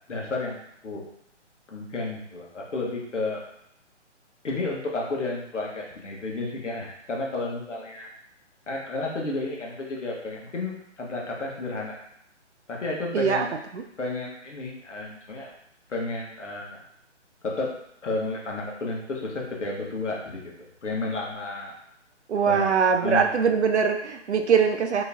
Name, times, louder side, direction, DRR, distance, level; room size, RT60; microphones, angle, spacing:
voice 1, 0.1-1.0 1.7-3.4 4.4-8.1 8.7-12.0 12.7-13.5 14.0-15.5 15.9-16.8 17.4-17.7 18.0-20.5 20.8-21.7 22.5-23.5, left 2 dB, 75° left, -2 dB, 1.4 m, -32 dB
voice 2, 13.1-13.5 13.7-13.8 22.3-25.0, right 6 dB, 70° right, 5 dB, 0.7 m, -22 dB
4.8 x 3.1 x 2.7 m, 0.73 s
hypercardioid pair, 165°, 36 cm